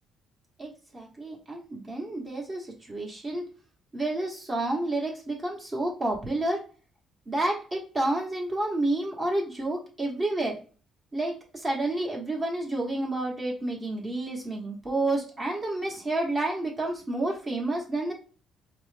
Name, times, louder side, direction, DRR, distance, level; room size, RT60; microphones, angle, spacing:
voice 1, 0.6-3.5 3.9-6.6 7.3-10.6 11.1-18.1, right 2 dB, 25° right, -2 dB, 1.1 m, -30 dB
4.6 x 2.1 x 3.2 m, 0.38 s
cardioid pair, 115°, 0 cm